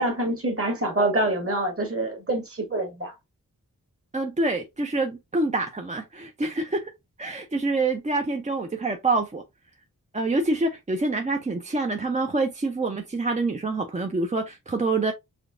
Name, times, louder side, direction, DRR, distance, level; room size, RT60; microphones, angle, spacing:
voice 1, 0.0-3.2, right 1 dB, 40° right, 1.4 m, -26 dB
voice 2, 4.1-6.9 7.2-9.4 10.1-15.1, right 2 dB, 20° right, 0.5 m, -26 dB
5.0 x 2.1 x 2.4 m
wide cardioid pair, 70°, 35 cm